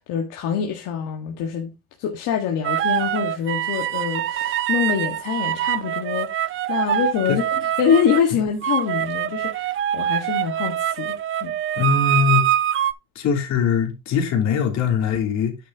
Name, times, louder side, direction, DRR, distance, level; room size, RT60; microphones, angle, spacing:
voice 1, 0.0-1.7 2.0-7.4 7.8-11.1 11.4-11.5, left 8 dB, 75° left, 1.6 m, -25 dB
sound 1, 2.6-8.2 8.6-12.9, right 11 dB, 40° right, 0.5 m, -24 dB
voice 2, 11.7-12.5 13.1-15.6, left 6 dB, 60° left, 3.0 m, -21 dB
9.5 x 7.5 x 2.8 m
cardioid pair, 155°, 31 cm